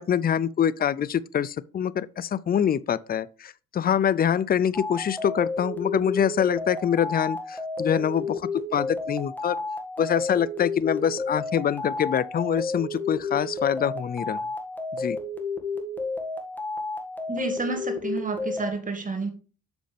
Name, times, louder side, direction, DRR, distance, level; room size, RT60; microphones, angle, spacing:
voice 1, 0.0-9.6 10.0-14.4 15.0-15.2, left 9 dB, 30° left, 0.4 m, -25 dB
sound 1, 4.7-18.7, left 3 dB, 5° left, 1.8 m, -32 dB
voice 2, 17.3-19.3, right 3 dB, 25° right, 1.8 m, -30 dB
7.9 x 6.3 x 3.4 m
cardioid pair, 90°, 30 cm